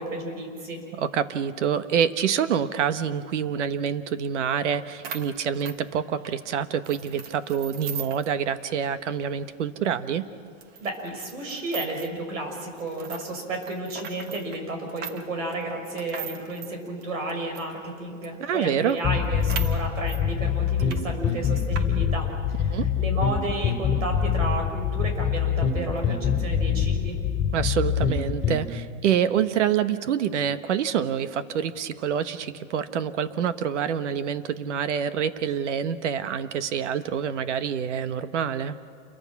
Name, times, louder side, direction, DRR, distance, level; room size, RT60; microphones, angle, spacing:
voice 1, 0.0-0.8 10.8-27.2, right 2 dB, 85° right, 3 dB, 6.5 m, -32 dB
voice 2, 1.0-10.3 18.4-19.0 22.7-22.9 27.5-38.7, right 8 dB, 65° right, 12 dB, 1.3 m, -26 dB
sound 1, 4.7-4.8 5.0-6.4 6.8-8.3 8.6-8.7 9.1-9.2 9.8-9.9 10.6-12.2 12.8-17.7 18.2-18.3 18.6-18.7 18.9-20.2 20.7-21.0 21.3-21.8, right 8 dB, 25° right, 1.1 m, -39 dB
sound 2, 19.0-28.6, left 8 dB, 15° left, 2.4 m, -25 dB
28.5 x 23.0 x 6.0 m, 2.3 s
hypercardioid pair, 150°, 39 cm